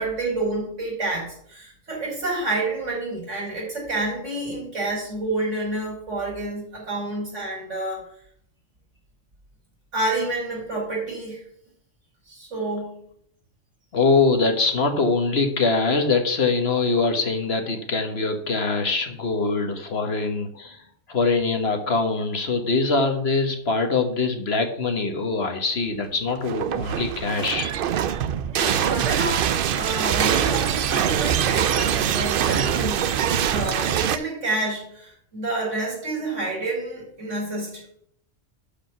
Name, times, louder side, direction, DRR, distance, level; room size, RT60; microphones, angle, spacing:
voice 1, 0.0-8.0 9.9-11.4 12.3-13.0 28.5-33.1 33.5-37.8, right 2 dB, 75° right, -4 dB, 5.4 m, -29 dB
voice 2, 13.9-20.8 21.1-27.7, left 3 dB, 55° left, 6 dB, 1.5 m, -23 dB
sound 1, 26.4-34.2, right 9 dB, 60° right, 0.6 m, -23 dB
12.0 x 5.1 x 6.0 m, 0.67 s
omnidirectional pair, 1.3 m